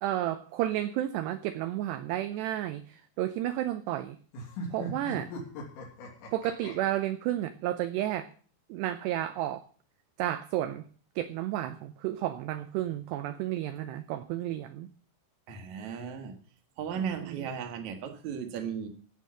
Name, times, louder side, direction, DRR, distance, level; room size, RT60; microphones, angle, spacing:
voice 1, 0.0-4.2 4.7-5.3 6.3-8.3 8.7-9.6 10.2-10.9 11.2-14.9 17.0-17.5, right 13 dB, 85° right, 2.4 m, -32 dB
sound 1, 4.3-6.7, equal, 75° left, 5.3 m, -38 dB
voice 2, 15.5-16.3 16.8-18.9, right 7 dB, 55° right, 2.1 m, -36 dB
16.0 x 5.5 x 7.6 m
omnidirectional pair, 5.6 m